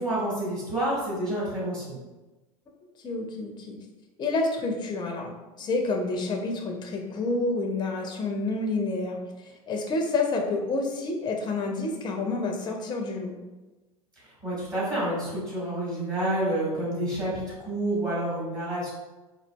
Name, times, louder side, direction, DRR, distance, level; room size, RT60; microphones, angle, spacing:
voice 1, 0.0-2.0 14.4-18.9, right 1 dB, 20° right, -8 dB, 1.5 m, -29 dB
voice 2, 3.0-3.8 4.2-9.2 9.7-13.3, left 3 dB, 25° left, 2 dB, 0.6 m, -29 dB
3.8 x 2.4 x 2.2 m, 1.1 s
figure-of-eight pair, 80°, 19 cm